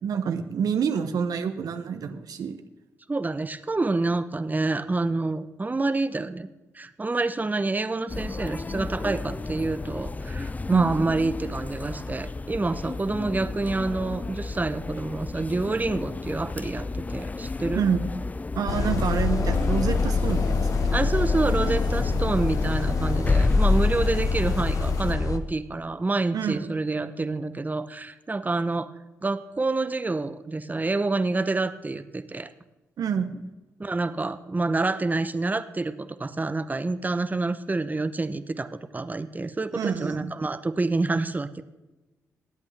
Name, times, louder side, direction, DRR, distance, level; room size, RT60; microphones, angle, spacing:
voice 1, 0.0-2.6 10.7-10.9 17.7-18.1 18.6-20.7 26.3-26.7 33.0-33.5 39.7-40.3, right 7 dB, 65° right, 8 dB, 0.9 m, -27 dB
voice 2, 3.1-6.5 6.7-17.8 20.9-28.9 29.2-32.5 33.8-41.6, right 3 dB, 25° right, 11 dB, 0.8 m, -28 dB
sound 1, 8.1-25.1, left 3 dB, 20° left, 0.4 m, -31 dB
sound 2, 18.7-25.4, left 4 dB, 55° left, 1.1 m, -25 dB
20.5 x 8.5 x 3.4 m, 1.1 s
hypercardioid pair, 40°, 7 cm